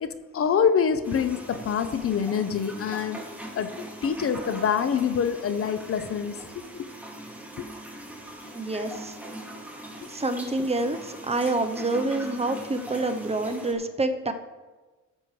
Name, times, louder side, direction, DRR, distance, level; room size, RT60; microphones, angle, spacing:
voice 1, 0.0-3.2 3.5-6.4 6.7-6.9 7.6-7.7, left 7 dB, 50° left, 11 dB, 0.7 m, -26 dB
sound 1, 1.0-13.7, right 1 dB, 5° right, 1.7 m, -41 dB
voice 2, 8.5-9.2 10.1-14.3, right 2 dB, 20° right, 7 dB, 0.7 m, -27 dB
13.0 x 7.4 x 3.2 m, 1.3 s
cardioid pair, 90°, 30 cm